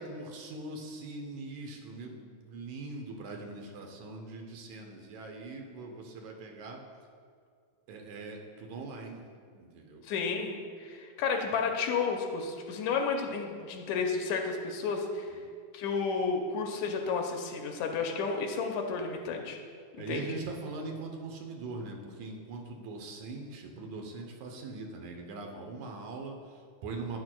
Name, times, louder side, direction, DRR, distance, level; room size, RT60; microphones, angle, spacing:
voice 1, 0.0-6.8 7.9-9.2 9.5-10.0 15.3-15.4 20.0-27.2, right 3 dB, 75° right, 2 dB, 2.1 m, -41 dB
voice 2, 10.0-10.6 10.8-15.3 15.7-19.6 20.1-20.3, left 5 dB, 80° left, 3 dB, 1.9 m, -32 dB
10.5 x 9.3 x 2.2 m, 2.1 s
omnidirectional pair, 3.4 m